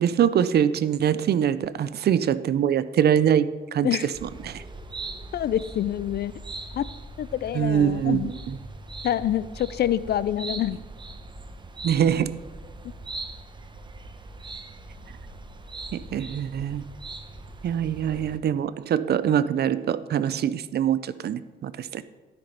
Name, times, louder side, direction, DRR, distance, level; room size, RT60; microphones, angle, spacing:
voice 1, 0.0-3.5 3.7-3.9 4.2-4.6 7.5-8.3 11.8-12.3 15.9-16.8 17.6-22.1, right 9 dB, 55° right, 15 dB, 0.5 m, -23 dB
sound 1, 4.1-18.4, right 2 dB, 25° right, 0.9 m, -40 dB
voice 2, 5.3-6.3 6.7-6.9 7.2-8.3 9.0-10.8, left 11 dB, 55° left, 18 dB, 0.4 m, -26 dB
13.0 x 6.0 x 5.1 m, 1.3 s
cardioid pair, 90°, 20 cm